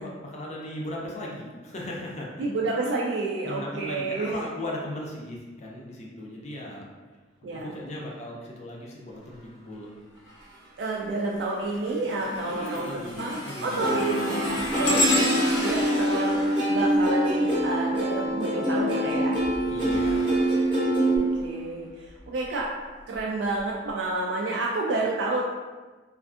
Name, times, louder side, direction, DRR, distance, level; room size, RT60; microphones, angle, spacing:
voice 1, 0.0-2.3 3.4-6.8 7.5-9.9 12.4-15.0 19.7-20.3, left 1 dB, 35° left, -2 dB, 0.5 m, -37 dB
voice 2, 2.4-4.3 7.4-7.8 10.8-16.4 16.7-19.4 21.1-22.7 23.1-25.4, right 2 dB, 65° right, -3 dB, 0.3 m, -30 dB
sound 1, 10.3-10.7 11.2-18.0 19.2-21.4 22.1-22.2 23.1-23.2, equal, 85° left, 0.7 m, -31 dB
Plucked string instrument, 13.8-21.2, right 1 dB, 25° right, 0.7 m, -25 dB
2.4 x 2.4 x 2.4 m, 1.3 s
head